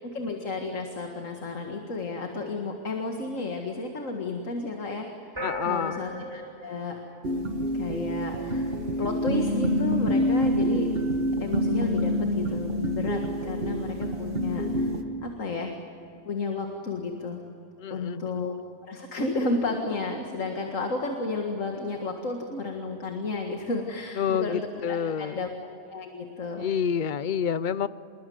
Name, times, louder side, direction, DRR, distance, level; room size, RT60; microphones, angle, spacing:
voice 1, 0.0-5.1 5.3-7.0 7.3-10.9 11.4-14.9 15.2-15.7 16.2-17.4 17.9-18.6 18.9-25.5 25.9-26.7, left 3 dB, 85° left, 3 dB, 2.3 m, -32 dB
voice 2, 5.4-6.0 17.8-18.5 24.2-25.5 26.6-27.9, left 8 dB, 45° left, 16 dB, 0.7 m, -28 dB
sound 1, 5.4-8.0, right 1 dB, 20° right, 5.2 m, -38 dB
sound 2, 7.2-15.0, equal, 50° right, 1.7 m, -27 dB
26.5 x 21.5 x 9.4 m, 2.8 s
omnidirectional pair, 1.3 m